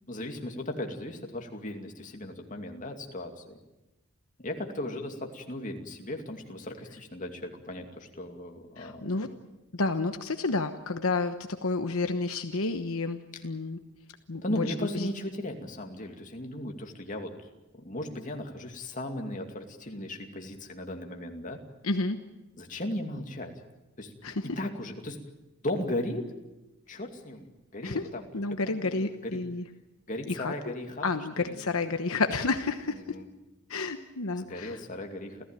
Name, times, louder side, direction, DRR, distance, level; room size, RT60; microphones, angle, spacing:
voice 1, 0.1-3.6 4.4-9.2 13.3-13.4 14.4-17.3 17.7-21.6 22.6-23.5 24.0-24.1 24.4-25.2 25.6-26.3 26.9-28.3 28.6-29.4 30.1-31.1 31.4-31.6 32.9-33.3 34.4-35.4, left 1 dB, 35° left, 3 dB, 2.5 m, -36 dB
voice 2, 8.8-9.3 9.7-11.4 11.6-13.8 14.3-14.7 14.9-15.1 21.8-22.2 24.2-24.5 27.8-28.1 28.3-29.6 30.3-30.5 31.0-33.2 33.7-34.8, left 3 dB, 70° left, 7 dB, 1.1 m, -30 dB
29.0 x 15.0 x 9.1 m, 1.0 s
head